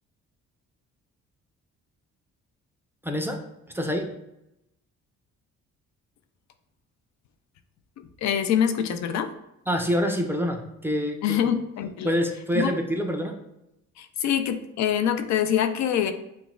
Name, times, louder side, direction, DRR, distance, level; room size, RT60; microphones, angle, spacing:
voice 1, 3.0-3.4 3.7-4.1 9.7-11.4 12.0-13.4, equal, 5° right, 3 dB, 0.5 m, -26 dB
voice 2, 8.0-9.3 11.2-12.1 12.5-12.7 14.0-16.1, left 9 dB, 65° left, 8 dB, 0.5 m, -25 dB
6.1 x 2.3 x 2.3 m, 0.84 s
cardioid pair, 90°, 30 cm